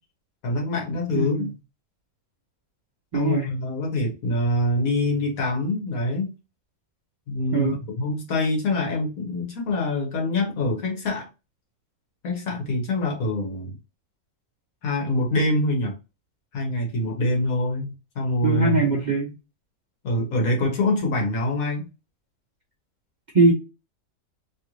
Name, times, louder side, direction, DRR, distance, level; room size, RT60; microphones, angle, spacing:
voice 1, 0.4-1.5 3.1-6.3 7.3-11.3 12.2-13.7 14.8-15.9 16.5-18.8 20.0-21.9, left 2 dB, 75° left, 1.5 m, -25 dB
voice 2, 1.1-1.5 3.1-3.5 7.5-7.8 18.4-19.3 23.3-23.5, right 3 dB, 50° right, 0.6 m, -21 dB
3.1 x 2.5 x 3.0 m
omnidirectional pair, 1.5 m